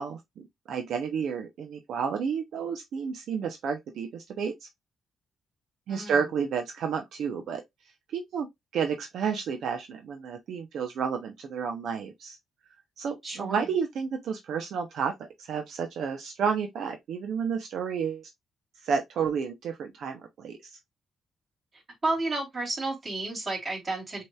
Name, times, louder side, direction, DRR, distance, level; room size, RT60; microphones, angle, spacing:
voice 1, 0.0-4.7 5.9-7.6 8.1-8.5 8.7-12.4 13.0-18.3 18.8-20.7, right 6 dB, 75° right, 0.6 m, -31 dB
voice 2, 5.9-6.2 13.2-13.6 22.0-24.2, right 2 dB, 35° right, 2.9 m, -31 dB
6.1 x 2.9 x 2.2 m
cardioid pair, 80°, 0 cm